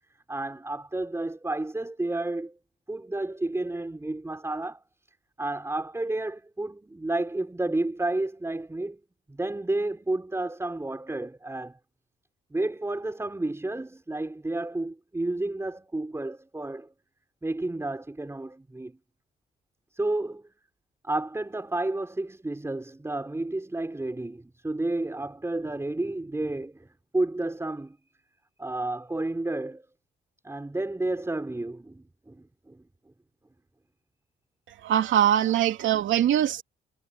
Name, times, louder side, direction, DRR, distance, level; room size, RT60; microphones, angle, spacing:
voice 1, 0.3-2.5 2.9-4.8 5.4-9.0 9.3-11.8 12.5-16.9 17.4-19.0 19.9-20.5 21.0-26.9 27.1-28.0 28.6-29.8 30.4-32.8, right 2 dB, 15° right, 5.1 m, -31 dB
voice 2, 34.8-36.6, right 11 dB, 75° right, 2.7 m, -22 dB
cardioid pair, 90°, 20 cm